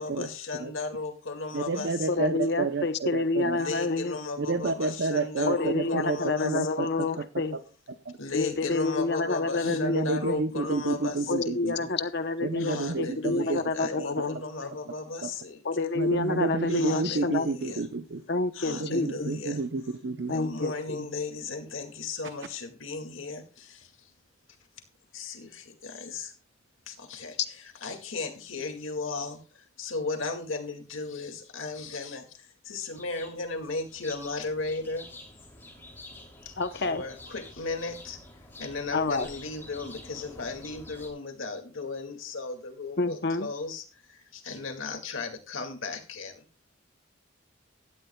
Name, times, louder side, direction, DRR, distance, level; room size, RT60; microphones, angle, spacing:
voice 1, 0.0-2.3 3.5-6.7 8.2-11.5 11.8-11.9 12.6-15.9 16.7-17.9 18.5-19.6 20.3-24.1 25.1-26.3 26.9-35.1 36.5-38.2 38.6-46.4, left 3 dB, 80° left, 4 dB, 2.2 m, -36 dB
voice 2, 1.5-3.6 4.4-7.2 8.0-8.1 9.6-11.9 12.4-13.6 14.0-14.1 15.2-15.3 15.9-18.2 18.7-20.4, right 3 dB, 60° right, 9 dB, 0.7 m, -30 dB
voice 3, 2.1-4.2 5.5-7.6 8.3-10.4 11.3-14.7 15.6-17.5 18.3-19.3 20.3-21.1 36.6-37.0 38.9-39.3 43.0-43.5, left 3 dB, 55° left, 10 dB, 0.9 m, -28 dB
sound 1, 32.8-41.1, left 2 dB, 10° left, 2.9 m, -48 dB
17.0 x 12.5 x 2.3 m, 0.36 s
head